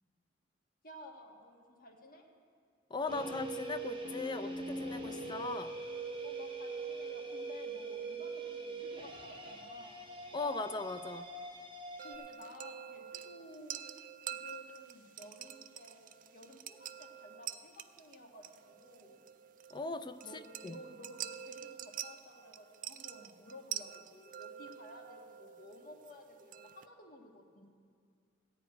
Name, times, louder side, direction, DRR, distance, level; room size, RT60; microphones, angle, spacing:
voice 1, 0.8-2.2 6.2-10.1 12.0-13.9 14.3-19.3 20.2-27.7, left 1 dB, 45° left, 1 dB, 1.6 m, -54 dB
voice 2, 2.9-5.7 10.3-11.3 19.7-20.2 20.6-20.8, left 3 dB, 25° left, 11 dB, 0.4 m, -38 dB
sound 1, 3.1-12.2, right 3 dB, 30° right, 1.4 m, -42 dB
sound 2, 12.0-26.9, right 10 dB, 45° right, 0.4 m, -47 dB
14.5 x 5.0 x 9.1 m, 2.1 s
head